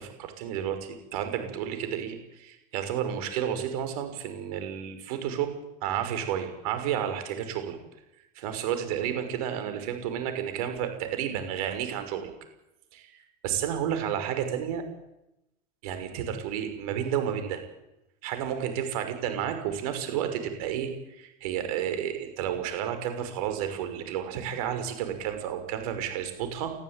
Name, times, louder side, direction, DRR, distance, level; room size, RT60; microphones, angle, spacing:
voice 1, 0.0-5.6 5.8-7.8 8.4-12.3 12.9-14.8 15.8-17.6 18.2-26.7, right 9 dB, 75° right, 8 dB, 5.8 m, -31 dB
24.0 x 14.5 x 9.2 m, 0.89 s
supercardioid pair, 115°, 19 cm